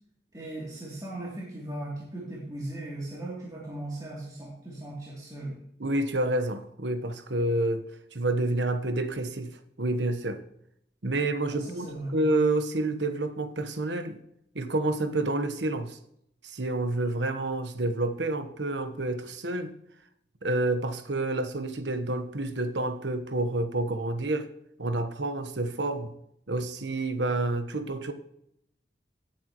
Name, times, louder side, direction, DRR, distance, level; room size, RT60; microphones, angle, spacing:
voice 1, 0.3-5.6 11.5-12.2, right 1 dB, 20° right, -7 dB, 3.0 m, -38 dB
voice 2, 5.8-7.8 8.1-10.4 11.0-11.9 12.1-14.2 14.5-16.0 16.4-19.7 20.4-24.5 24.8-26.1 26.5-28.1, right 2 dB, 85° right, 8 dB, 1.2 m, -29 dB
17.5 x 8.7 x 3.1 m, 0.73 s
head